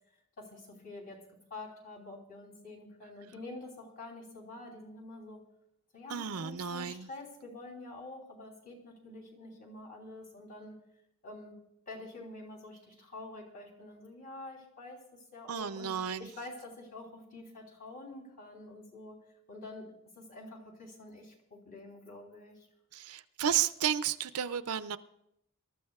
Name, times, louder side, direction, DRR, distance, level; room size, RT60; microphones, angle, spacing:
voice 1, 0.4-1.2 1.5-5.4 5.9-10.8 11.2-11.6 11.9-15.9 16.2-19.2 19.5-22.7, left 2 dB, 40° left, 0 dB, 3.3 m, -47 dB
voice 2, 6.1-7.1 15.5-16.3 22.9-25.0, right 8 dB, 75° right, 13 dB, 0.5 m, -32 dB
25.0 x 13.0 x 2.4 m, 0.78 s
head